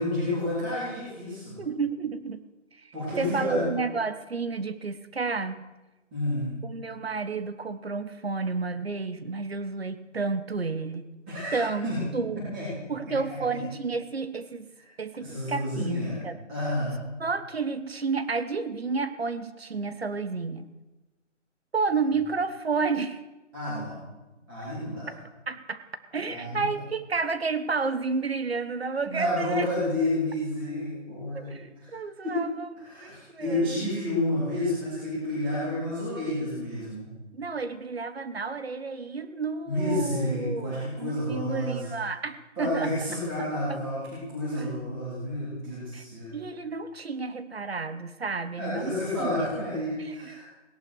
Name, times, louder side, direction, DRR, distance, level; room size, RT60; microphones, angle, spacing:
voice 1, 0.0-1.6 2.9-3.7 6.1-6.5 11.3-12.0 12.4-13.6 15.2-16.2 16.5-17.0 23.5-24.0 24.5-25.1 26.3-26.7 29.0-32.0 32.2-32.4 32.8-37.1 39.7-41.9 42.6-46.3 48.6-50.5, left 1 dB, 10° right, -11 dB, 3.8 m, -30 dB
voice 2, 1.6-2.4 2.7-5.6 6.6-11.1 11.5-12.4 12.9-14.7 15.0-16.4 17.2-20.7 21.7-23.2 25.5-25.8 26.1-29.7 31.3-32.7 33.0-33.9 37.3-42.9 43.4-43.8 44.5-44.7 45.9-46.0 46.3-49.5 50.0-50.4, right 4 dB, 55° right, 12 dB, 1.3 m, -31 dB
17.5 x 11.0 x 6.4 m, 1.1 s
hypercardioid pair, 175°, 37 cm